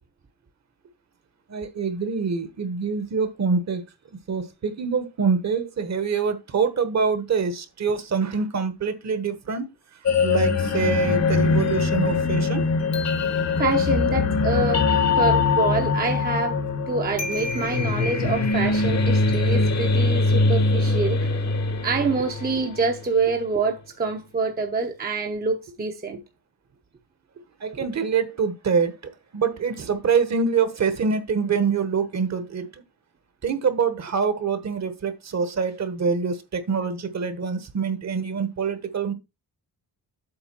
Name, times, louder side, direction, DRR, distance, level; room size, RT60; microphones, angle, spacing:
voice 1, 1.5-3.8 4.3-9.7 10.2-12.6 22.2-22.3 27.6-29.0 29.3-32.8 33.4-39.1, right 5 dB, 45° right, 1.2 m, -25 dB
sound 1, 10.1-23.0, left 4 dB, 45° left, 1.1 m, -22 dB
voice 2, 13.6-14.9 15.2-21.3 21.8-26.2 27.7-27.9, right 4 dB, 25° right, 0.8 m, -26 dB
8.0 x 3.4 x 6.0 m
wide cardioid pair, 165°, 38 cm